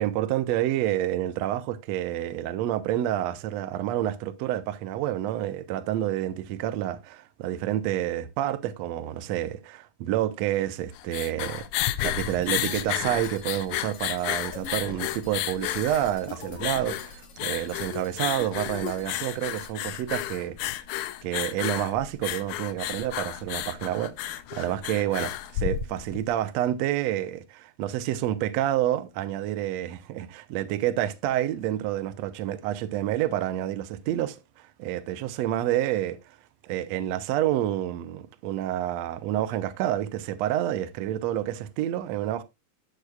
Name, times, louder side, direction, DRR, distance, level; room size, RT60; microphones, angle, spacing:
voice 1, 0.0-11.7 12.0-20.7 21.2-36.4 36.6-42.4, right 12 dB, 90° right, 1.5 m, -29 dB
sound 1, 10.8-26.3, left 13 dB, 80° left, 1.8 m, -32 dB
sound 2, 12.2-19.7, left 4 dB, 55° left, 3.2 m, -44 dB
11.5 x 8.2 x 2.3 m
omnidirectional pair, 4.1 m